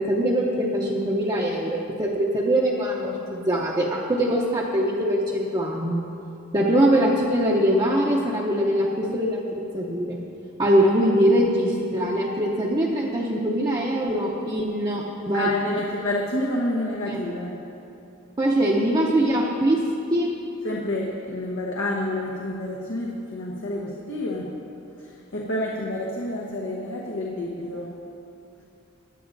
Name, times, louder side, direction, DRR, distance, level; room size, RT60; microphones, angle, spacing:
voice 1, 0.0-6.0 6.5-10.2 10.6-15.5 17.1-17.2 18.4-19.8 20.1-20.3, right 1 dB, 20° right, -4 dB, 0.7 m, -22 dB
voice 2, 15.3-17.6 20.6-24.5 25.0-28.0, left 1 dB, 80° left, -3 dB, 1.1 m, -29 dB
18.5 x 10.5 x 2.6 m, 2.7 s
head